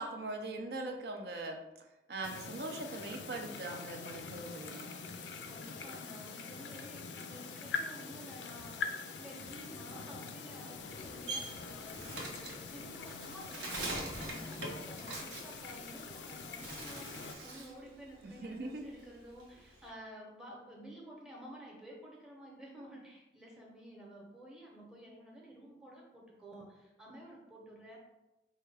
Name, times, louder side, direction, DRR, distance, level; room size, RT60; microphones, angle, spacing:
voice 1, 0.0-1.6 2.1-4.9 18.4-18.8, right 2 dB, 60° right, 4 dB, 0.5 m, -41 dB
sound 1, 2.2-17.4, left 5 dB, 90° left, 0.4 m, -44 dB
voice 2, 5.5-28.0, equal, 5° right, -3 dB, 0.8 m, -52 dB
Bird, 10.7-16.2 16.5-17.8 18.2-19.9, right 2 dB, 90° right, 0.9 m, -43 dB
4.4 x 2.2 x 3.3 m, 0.98 s
head